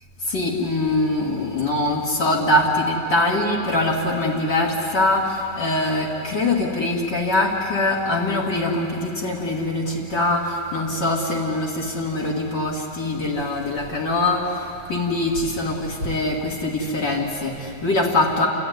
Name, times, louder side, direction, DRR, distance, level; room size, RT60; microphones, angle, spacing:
voice 1, 0.2-18.5, left 2 dB, 70° left, -4 dB, 3.1 m, -23 dB
29.5 x 15.0 x 9.5 m, 2.8 s
omnidirectional pair, 1.9 m